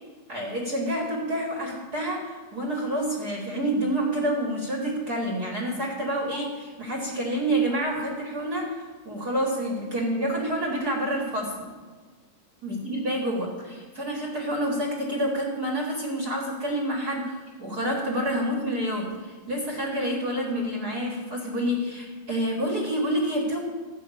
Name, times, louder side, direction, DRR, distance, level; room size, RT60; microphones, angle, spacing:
voice 1, 0.3-11.7 12.6-23.6, right 1 dB, 45° right, -1 dB, 1.3 m, -28 dB
13.5 x 6.3 x 8.4 m, 1.5 s
omnidirectional pair, 4.6 m